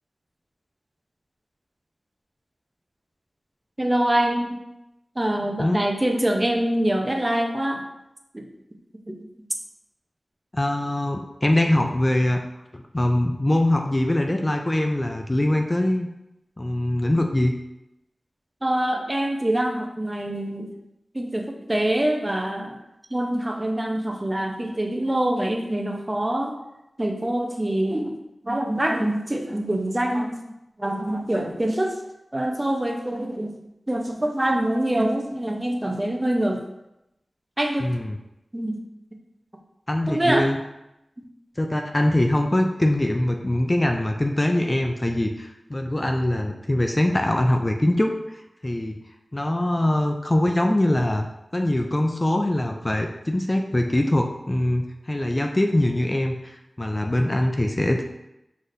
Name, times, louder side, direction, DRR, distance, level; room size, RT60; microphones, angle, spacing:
voice 1, 3.8-4.6 5.2-7.8 8.3-8.5 9.1-9.2 18.6-20.7 21.1-22.7 23.1-26.6 27.0-28.2 28.4-30.4 30.8-32.0 32.3-33.5 33.9-36.6 37.6-37.9 38.5-38.8 40.1-40.5, right 1 dB, 25° right, 2 dB, 0.7 m, -24 dB
voice 2, 10.5-12.4 12.7-16.1 16.6-17.5 37.8-38.2 39.9-40.6 41.6-48.4 48.6-49.0 49.3-51.3 51.5-58.0, left 1 dB, 25° left, 3 dB, 0.4 m, -23 dB
4.9 x 4.1 x 2.6 m, 0.88 s
wide cardioid pair, 70°, 0 cm